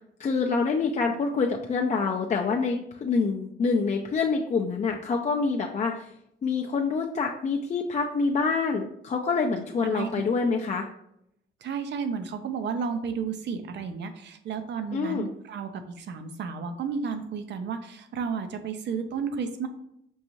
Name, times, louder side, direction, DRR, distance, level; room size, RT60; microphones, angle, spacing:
voice 1, 0.2-6.1 6.4-10.9 14.9-15.3, left 4 dB, 35° left, 0 dB, 0.4 m, -26 dB
voice 2, 11.6-19.7, right 6 dB, 65° right, 8 dB, 0.6 m, -32 dB
5.4 x 2.6 x 3.0 m, 0.75 s
cardioid pair, 90°, 20 cm